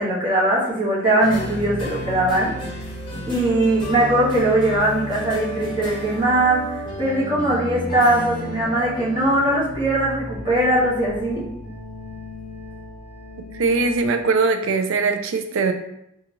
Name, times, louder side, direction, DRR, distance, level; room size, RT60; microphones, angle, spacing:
voice 1, 0.0-2.5 3.3-11.5, right 1 dB, 25° right, -8 dB, 1.2 m, -20 dB
sound 1, 1.2-14.0, left 1 dB, 25° left, 0.9 m, -33 dB
voice 2, 13.5-15.7, right 4 dB, 80° right, 8 dB, 0.4 m, -21 dB
3.8 x 2.4 x 3.0 m, 0.78 s
head